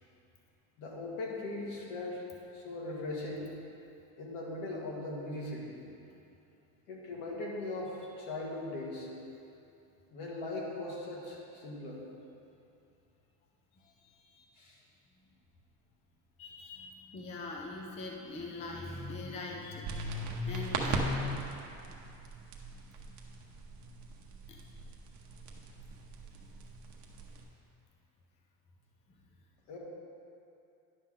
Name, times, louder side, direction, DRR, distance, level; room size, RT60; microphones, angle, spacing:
voice 1, 0.8-2.3 2.5-3.5 4.2-5.8 6.9-9.1 10.1-12.0 14.6-14.8 29.7-29.8, left 2 dB, 70° left, -3 dB, 1.9 m, -39 dB
voice 2, 13.8-14.4 16.4-21.6 24.5-24.6, left 3 dB, 15° left, 0 dB, 0.4 m, -39 dB
sound 1, 19.8-27.4, right 4 dB, 45° right, 0.9 m, -41 dB
10.5 x 6.4 x 3.7 m, 2.7 s
cardioid pair, 165°, 42 cm